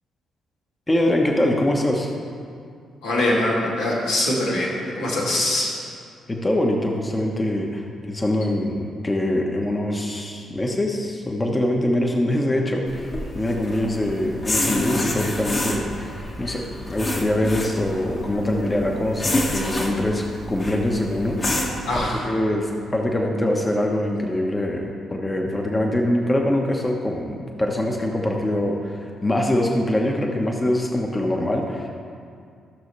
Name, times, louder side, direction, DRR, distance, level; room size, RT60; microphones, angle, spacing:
voice 1, 0.9-2.1 6.3-21.7 22.0-31.9, left 1 dB, 25° left, 1 dB, 1.2 m, -23 dB
voice 2, 3.0-5.7 21.9-22.3, left 1 dB, 85° left, -8 dB, 2.6 m, -23 dB
sound 1, 12.9-22.0, left 1 dB, 45° left, 1.7 m, -28 dB
15.0 x 6.3 x 3.3 m, 2.3 s
hypercardioid pair, 45°, 0 cm